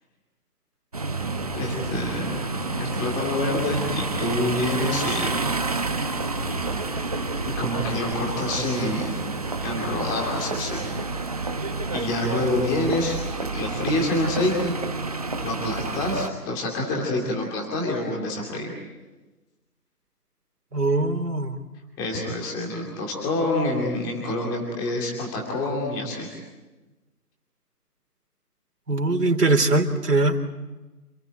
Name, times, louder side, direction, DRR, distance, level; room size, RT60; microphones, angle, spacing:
sound 1, 0.9-16.3, right 3 dB, 25° right, 1.1 m, -29 dB
voice 1, 1.6-2.4 2.8-5.4 7.6-9.4 9.6-10.9 11.5-13.2 13.5-14.7 15.1-18.7 22.0-26.4, left 1 dB, 10° left, -1 dB, 2.6 m, -27 dB
voice 2, 20.7-21.6 28.9-30.4, right 2 dB, 75° right, 6 dB, 3.5 m, -21 dB
28.0 x 17.0 x 9.2 m, 1.2 s
figure-of-eight pair, 165°, 48 cm